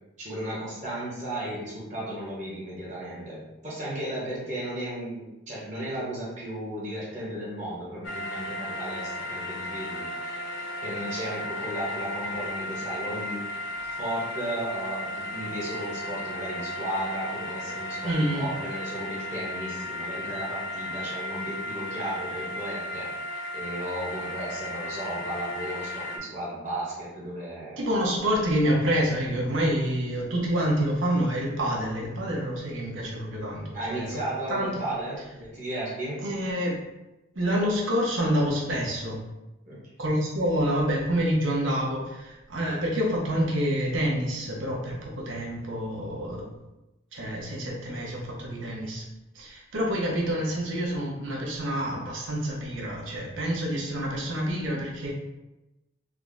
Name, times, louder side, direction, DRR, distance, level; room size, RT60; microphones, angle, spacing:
voice 1, 0.2-10.4 10.8-13.5 14.0-23.1 23.5-27.8 33.7-36.2 39.7-39.8, right 1 dB, 40° right, -6 dB, 1.0 m, -34 dB
sound 1, 8.0-26.2, left 1 dB, 75° left, 0.6 m, -35 dB
voice 2, 18.0-18.5 27.8-34.1 34.5-34.8 36.2-36.8 37.3-39.2 40.0-46.5 47.1-49.0 49.3-55.1, equal, 85° right, -2 dB, 0.9 m, -27 dB
3.6 x 2.1 x 3.6 m, 0.97 s
head